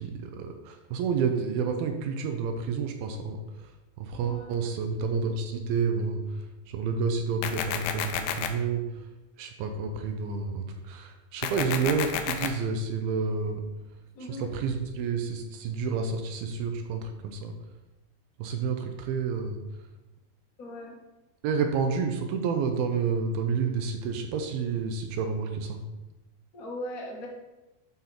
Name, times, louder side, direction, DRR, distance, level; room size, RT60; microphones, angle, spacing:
voice 1, 0.0-3.4 4.0-6.2 6.7-8.8 9.4-13.6 14.3-17.5 18.4-19.6 21.4-25.8, right 5 dB, 80° right, 5 dB, 2.2 m, -29 dB
voice 2, 4.1-4.6 14.1-14.5 20.6-21.0 26.5-27.3, left 1 dB, 60° left, -3 dB, 0.9 m, -39 dB
sound 1, 7.4-8.5 11.4-12.5, left 9 dB, 85° left, 3.0 m, -30 dB
11.5 x 4.3 x 4.3 m, 1.1 s
omnidirectional pair, 5.0 m